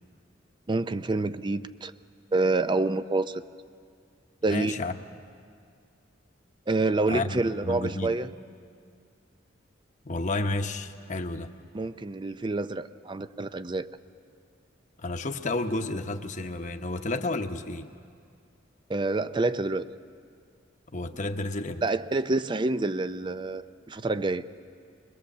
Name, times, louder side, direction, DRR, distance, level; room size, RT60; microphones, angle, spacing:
voice 1, 0.7-1.9 2.3-3.4 4.4-4.7 6.7-8.3 11.7-13.9 18.9-19.8 21.8-24.4, right 2 dB, 25° right, 12 dB, 0.5 m, -27 dB
voice 2, 4.5-5.0 7.1-8.1 10.0-11.5 15.0-17.9 20.9-21.8, left 2 dB, 40° left, 6 dB, 0.9 m, -31 dB
22.5 x 21.0 x 7.3 m, 2.3 s
head